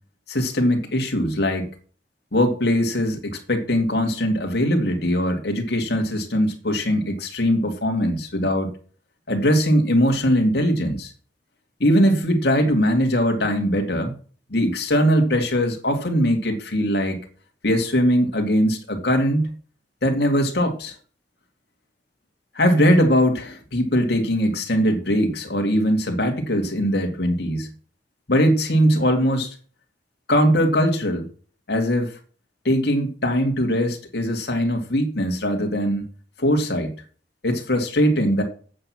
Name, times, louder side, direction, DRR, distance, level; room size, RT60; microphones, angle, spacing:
voice 1, 0.3-1.7 2.3-8.7 9.3-11.1 11.8-14.1 14.5-17.2 17.6-19.5 20.0-20.9 22.5-27.7 28.3-29.5 30.3-31.2 31.7-32.1 32.6-36.1 36.4-36.9 37.4-38.4, equal, 65° left, 3 dB, 2.4 m, -21 dB
8.6 x 8.0 x 6.0 m, 0.41 s
head